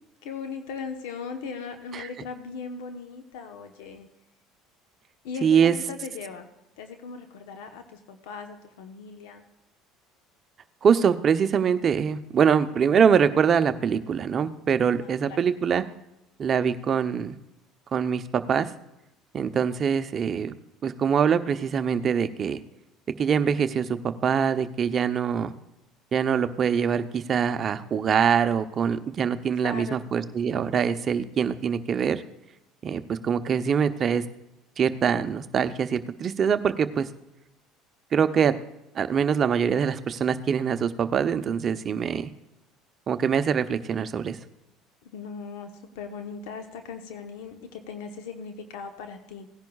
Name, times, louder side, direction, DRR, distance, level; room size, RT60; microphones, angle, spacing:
voice 1, 0.2-4.1 5.2-6.5 6.8-9.4 14.8-15.4 29.6-30.0 45.1-49.5, left 5 dB, 80° left, 6 dB, 1.0 m, -38 dB
voice 2, 5.4-5.7 10.8-15.8 16.4-17.4 17.9-18.7 19.3-20.5 20.8-22.6 23.2-25.5 26.1-32.2 32.8-34.2 34.8-37.1 38.1-38.5 38.9-42.3 43.1-44.4, right 7 dB, 40° right, 10 dB, 0.7 m, -24 dB
17.5 x 10.5 x 2.4 m, 0.90 s
supercardioid pair, 90°, 0 cm